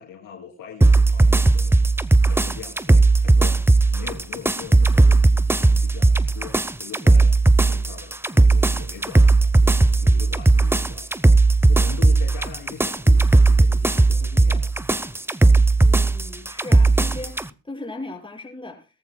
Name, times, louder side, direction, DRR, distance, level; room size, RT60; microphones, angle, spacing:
voice 1, 0.0-3.6 3.9-11.3 11.6-14.7, left 8 dB, 85° left, 3.3 m, -41 dB
sound 1, 0.8-17.5, right 2 dB, 10° right, 0.7 m, -17 dB
voice 2, 15.8-18.9, left 2 dB, 15° left, 5.8 m, -37 dB
22.0 x 14.0 x 2.2 m
supercardioid pair, 65°, 31 cm